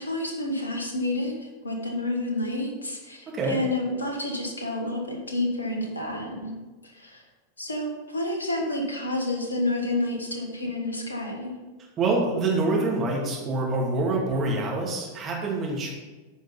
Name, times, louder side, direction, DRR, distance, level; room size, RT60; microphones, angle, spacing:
voice 1, 0.0-6.5 6.8-7.2 7.6-11.5, left 1 dB, 75° left, 1 dB, 1.3 m, -29 dB
voice 2, 3.3-3.6 12.0-15.9, right 2 dB, 25° right, -2 dB, 2.4 m, -26 dB
9.4 x 5.2 x 5.3 m, 1.2 s
figure-of-eight pair, 90°, 0 cm